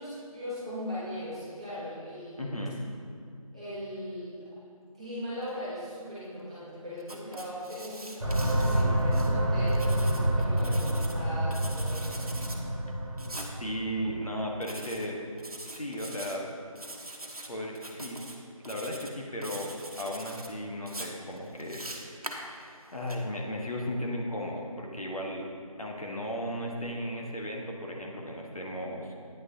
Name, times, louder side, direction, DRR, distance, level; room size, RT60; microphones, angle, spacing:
voice 1, 0.0-2.7 3.5-4.5 4.9-12.3, left 1 dB, 10° right, -15 dB, 1.0 m, -39 dB
voice 2, 2.4-2.8 13.6-15.2 15.7-16.4 17.5-18.2 18.6-22.5 22.9-25.5 25.8-29.1, equal, 70° left, -1 dB, 1.3 m, -35 dB
Writing, 7.0-9.3 9.7-11.2 11.5-12.6 13.2-13.5 14.6-15.1 15.4-16.4 16.8-17.5 17.8-18.4 18.6-19.1 19.4-20.5 20.9-23.2, right 1 dB, 80° right, 1.0 m, -43 dB
sound 1, 8.2-14.5, right 1 dB, 50° right, 1.6 m, -28 dB
9.3 x 6.2 x 2.8 m, 2.4 s
figure-of-eight pair, 170°, 19 cm